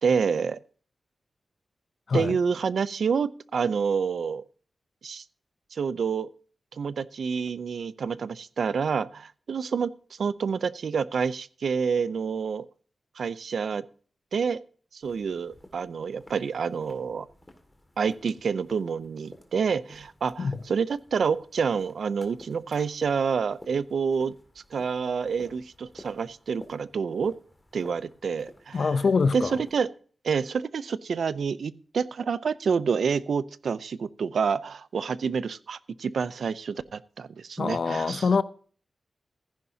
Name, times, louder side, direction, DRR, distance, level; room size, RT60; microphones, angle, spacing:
voice 1, 0.0-0.6 2.1-4.4 5.0-5.2 5.7-6.3 6.7-9.9 10.2-12.7 13.2-13.8 14.3-14.6 14.9-17.3 18.0-24.3 24.7-27.4 27.7-29.0 29.3-29.9 30.2-38.2, right 6 dB, 85° right, 0.5 m, -28 dB
sound 1, 15.0-29.8, left 1 dB, 15° left, 2.1 m, -51 dB
voice 2, 28.7-29.5 37.6-38.4, left 4 dB, 65° left, 0.6 m, -24 dB
15.0 x 10.5 x 2.8 m
wide cardioid pair, 90°, 0 cm